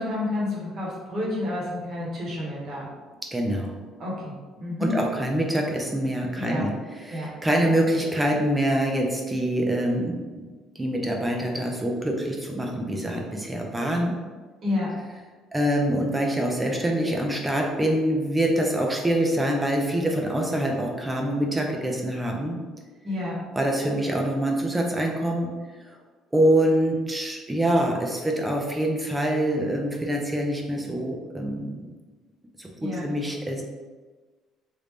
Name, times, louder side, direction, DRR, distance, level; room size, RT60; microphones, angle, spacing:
voice 1, 0.0-2.9 4.0-4.9 6.3-6.6 7.1-7.3 14.6-14.9 23.0-23.4 32.7-33.0, left 2 dB, 35° right, -4 dB, 0.9 m, -30 dB
voice 2, 3.3-3.7 4.8-10.5 10.8-14.2 15.5-22.6 23.6-25.5 25.8-26.0 26.3-31.8 32.6-33.6, right 1 dB, 10° right, 1 dB, 0.3 m, -25 dB
3.1 x 2.5 x 3.3 m, 1.4 s
cardioid pair, 180°, 0 cm